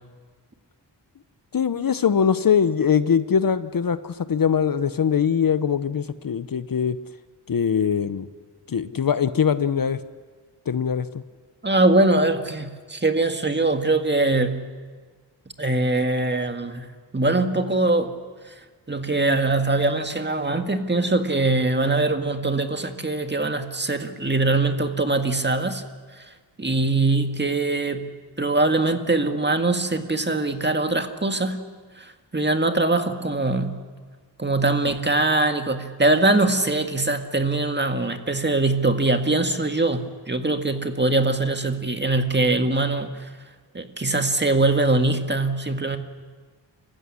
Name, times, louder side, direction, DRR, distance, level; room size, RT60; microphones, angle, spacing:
voice 1, 1.5-7.0 7.5-8.3 8.7-10.0 10.7-11.1, left 7 dB, 50° left, 13 dB, 0.9 m, -22 dB
voice 2, 11.6-14.7 15.6-16.9 17.1-18.2 18.9-25.8 26.6-31.6 32.0-33.8 34.4-43.3 43.7-46.0, right 2 dB, 25° right, 6 dB, 1.9 m, -22 dB
25.0 x 15.5 x 9.9 m, 1.5 s
cardioid pair, 75°, 43 cm